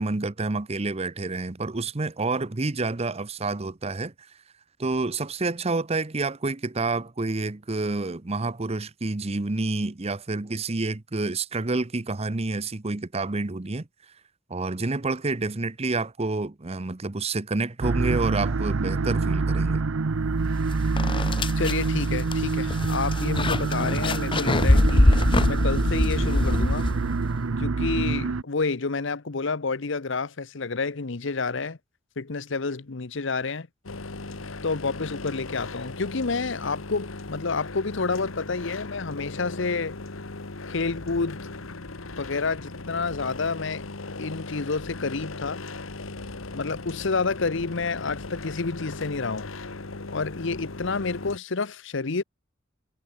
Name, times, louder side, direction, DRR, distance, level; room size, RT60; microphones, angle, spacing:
voice 1, 0.0-4.1 4.8-13.9 14.5-19.8, right 3 dB, 30° right, 0.8 m, -28 dB
sound 1, 17.8-28.4, right 3 dB, 80° right, 0.7 m, -26 dB
sound 2, 20.5-20.6 21.0-27.3, left 1 dB, 25° left, 0.8 m, -23 dB
voice 2, 21.6-26.9 27.6-31.8 32.2-33.7 34.6-40.0 40.7-41.5 42.2-43.9 44.2-45.6 46.5-49.5 50.1-52.2, left 4 dB, 65° left, 0.9 m, -29 dB
sound 3, 33.8-51.4, left 3 dB, 85° left, 1.7 m, -38 dB
head